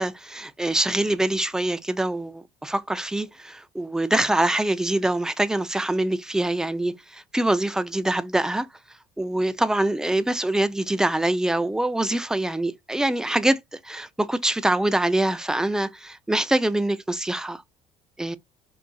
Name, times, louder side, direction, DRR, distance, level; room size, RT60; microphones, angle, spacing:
voice 1, 0.0-8.7 9.2-17.6 18.2-18.4, right 1 dB, 5° right, 0.4 m, -24 dB
3.9 x 2.4 x 2.3 m
supercardioid pair, 95°, 13 cm